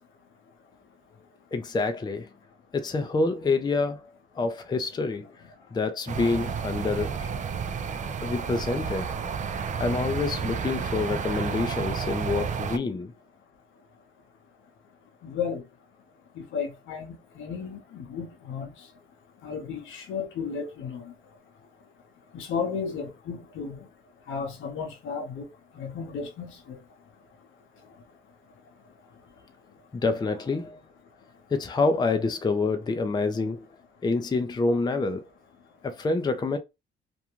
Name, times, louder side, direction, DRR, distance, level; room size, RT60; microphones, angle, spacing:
voice 1, 1.5-2.3 2.7-4.1 4.4-5.3 5.7-7.3 8.2-9.1 9.8-13.1 29.9-30.8 31.5-33.7 34.0-35.2 35.8-36.6, left 3 dB, 20° left, 0.5 m, -27 dB
sound 1, 6.1-12.8, right 6 dB, 40° right, 0.4 m, -31 dB
voice 2, 15.2-15.6 16.4-18.7 19.4-21.1 22.3-23.8 24.3-25.5 25.7-26.8, left 6 dB, 75° left, 0.8 m, -34 dB
2.5 x 2.2 x 3.0 m
cardioid pair, 90°, 20 cm